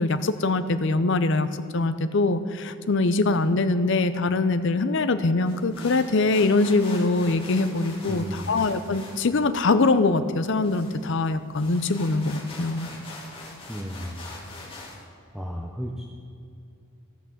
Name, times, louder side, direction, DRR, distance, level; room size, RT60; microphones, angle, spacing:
voice 1, 0.0-12.9, left 3 dB, 55° left, 11 dB, 0.6 m, -23 dB
sound 1, 5.4-15.0, left 2 dB, 25° left, 2.1 m, -43 dB
voice 2, 8.1-8.5 13.7-14.3 14.6-15.0 15.3-16.1, equal, ahead, 0 dB, 0.6 m, -35 dB
15.5 x 6.0 x 7.1 m, 2.7 s
head